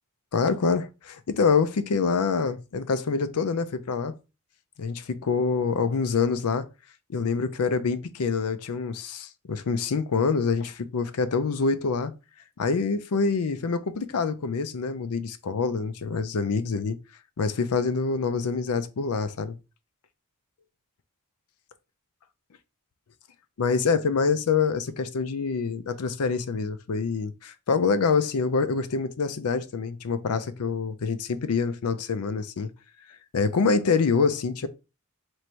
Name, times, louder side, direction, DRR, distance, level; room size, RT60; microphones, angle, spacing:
voice 1, 0.3-4.1 4.8-6.7 7.1-12.1 12.6-17.0 17.4-19.6 23.6-32.7 33.3-34.7, left 5 dB, 80° left, 0.5 m, -26 dB
3.2 x 2.6 x 4.4 m
head